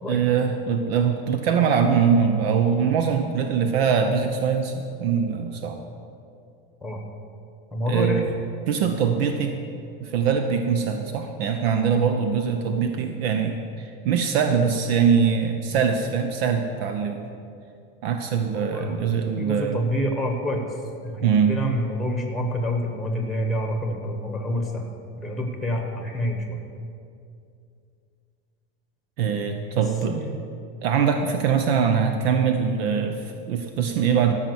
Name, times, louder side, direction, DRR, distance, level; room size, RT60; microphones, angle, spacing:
voice 1, 0.1-5.8 7.9-8.2 8.7-9.6 10.0-17.2 18.0-19.8 21.2-21.6 29.2-30.2 30.8-34.3, right 6 dB, 75° right, 6 dB, 1.0 m, -22 dB
voice 2, 7.7-8.2 18.5-18.9 19.4-20.6 21.0-24.9 25.2-26.6 30.1-30.3, equal, ahead, 3 dB, 1.1 m, -27 dB
14.0 x 5.8 x 7.9 m, 2.5 s
supercardioid pair, 170°, 31 cm